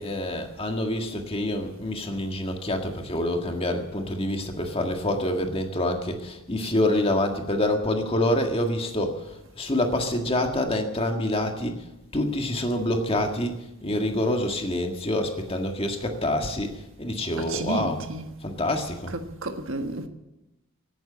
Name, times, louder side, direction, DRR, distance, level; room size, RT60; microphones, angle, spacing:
voice 1, 0.0-9.3 9.6-11.7 12.1-18.0 18.4-19.1, left 1 dB, 25° left, 1.8 m, -26 dB
voice 2, 17.4-18.3 19.1-20.1, right 2 dB, 65° right, 1.5 m, -31 dB
17.5 x 9.2 x 8.6 m
head